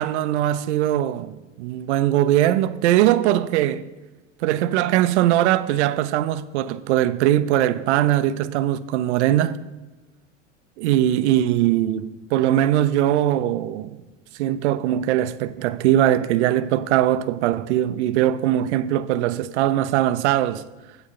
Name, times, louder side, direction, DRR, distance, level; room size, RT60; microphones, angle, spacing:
voice 1, 0.0-3.9 4.4-9.6 10.8-14.0 14.4-20.6, right 12 dB, 60° right, 0.6 m, -21 dB
8.8 x 8.1 x 3.7 m
hypercardioid pair, 80°, 38 cm